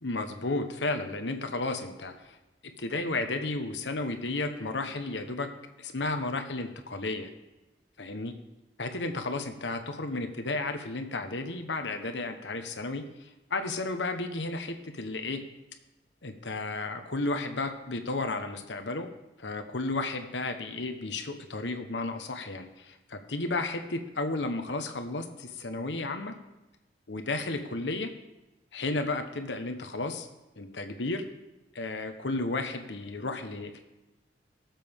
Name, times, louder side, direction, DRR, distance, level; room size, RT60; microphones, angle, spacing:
voice 1, 0.0-2.4 2.8-5.5 5.8-7.3 8.0-8.3 8.8-15.4 16.2-19.1 19.4-26.3 27.1-28.1 28.7-30.3 30.6-31.2 31.7-33.8, left 2 dB, 90° left, 7 dB, 1.2 m, -33 dB
19.0 x 7.5 x 3.7 m, 1.0 s
head